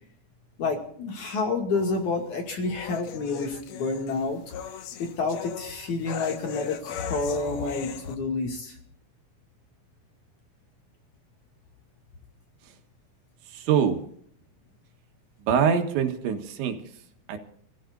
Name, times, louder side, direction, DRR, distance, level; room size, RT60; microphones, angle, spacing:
voice 1, 0.6-4.4 5.0-8.8, left 3 dB, 50° left, 2 dB, 3.3 m, -29 dB
sound 1, 1.7-8.2, left 9 dB, 70° left, 3.0 m, -39 dB
voice 2, 13.5-14.0 15.4-16.8 17.3-17.4, right 7 dB, 85° right, 5 dB, 3.9 m, -24 dB
28.5 x 15.5 x 2.6 m, 0.63 s
omnidirectional pair, 5.1 m